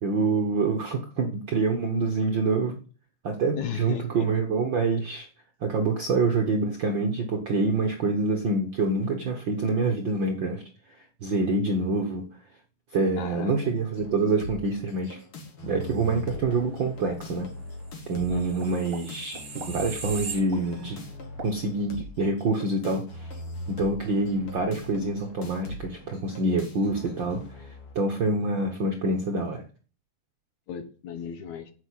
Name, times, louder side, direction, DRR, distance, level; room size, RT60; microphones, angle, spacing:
voice 1, 0.0-2.8 3.2-5.3 5.6-10.6 10.9-12.3 12.9-15.2 15.6-17.5 18.1-21.0 21.4-23.3 23.7-27.7 27.9-29.6, right 3 dB, 60° right, 3 dB, 1.3 m, -26 dB
voice 2, 3.6-4.3 13.1-13.5 18.3-18.6 30.7-31.7, left 7 dB, 65° left, 9 dB, 2.5 m, -35 dB
sound 1, 13.9-28.0, left 1 dB, 45° left, 2.8 m, -41 dB
sound 2, 18.1-21.0 21.4-21.5, right 4 dB, 35° right, 1.7 m, -39 dB
9.7 x 7.2 x 8.5 m, 0.39 s
omnidirectional pair, 3.7 m